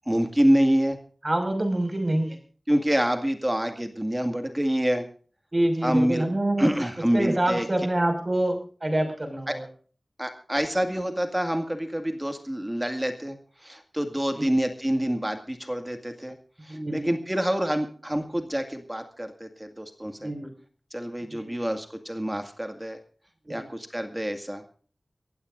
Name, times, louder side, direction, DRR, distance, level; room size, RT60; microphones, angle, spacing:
voice 1, 0.1-1.0 2.7-5.1 5.8-6.3 6.6-7.7 9.5-9.6 10.2-13.4 13.6-16.4 16.6-20.3 20.9-23.0 23.5-24.7, equal, 15° right, 6 dB, 2.0 m, -26 dB
voice 2, 1.2-2.4 5.5-6.7 7.1-9.6 14.4-14.5 16.7-17.1 20.2-20.5 21.3-21.5 23.5-23.6, right 1 dB, 35° right, 5 dB, 5.6 m, -26 dB
24.5 x 15.5 x 2.6 m, 0.42 s
wide cardioid pair, 60°, 0 cm